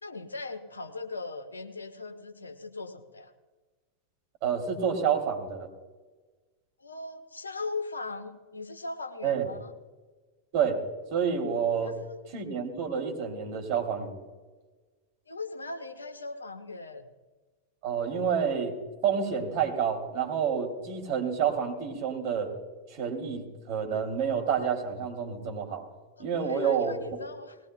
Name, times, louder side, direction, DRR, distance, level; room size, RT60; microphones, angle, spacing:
voice 1, 0.0-3.3 6.8-9.7 12.1-12.2 15.3-17.1 26.2-27.6, left 3 dB, 80° left, 7 dB, 1.1 m, -39 dB
voice 2, 4.4-5.7 9.2-9.5 10.5-10.8 11.1-12.0 12.3-14.2 17.8-18.8 19.0-22.5 22.9-25.8 26.2-27.2, right 7 dB, 45° right, 3 dB, 2.6 m, -29 dB
20.0 x 17.5 x 2.2 m, 1.3 s
figure-of-eight pair, 90°, 0 cm